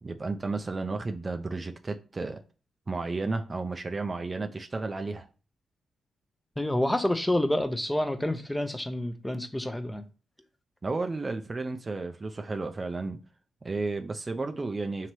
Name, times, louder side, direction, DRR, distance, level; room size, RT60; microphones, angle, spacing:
voice 1, 0.0-2.4 2.9-5.3 10.8-13.2 13.6-15.1, right 3 dB, 35° right, 0.4 m, -32 dB
voice 2, 6.6-10.0, left 1 dB, 10° left, 0.6 m, -28 dB
3.0 x 2.8 x 4.5 m
supercardioid pair, 50°, 0 cm